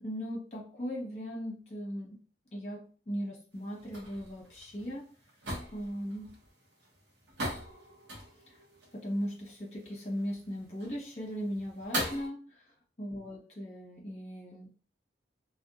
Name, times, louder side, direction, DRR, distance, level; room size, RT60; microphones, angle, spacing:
voice 1, 0.0-2.2 2.5-5.1 5.7-6.3 8.5-8.6 8.9-12.6 13.0-14.7, equal, 40° left, -2 dB, 1.0 m, -38 dB
sound 1, 3.5-12.3, right 1 dB, 90° right, 0.8 m, -41 dB
2.6 x 2.2 x 2.4 m, 0.35 s
head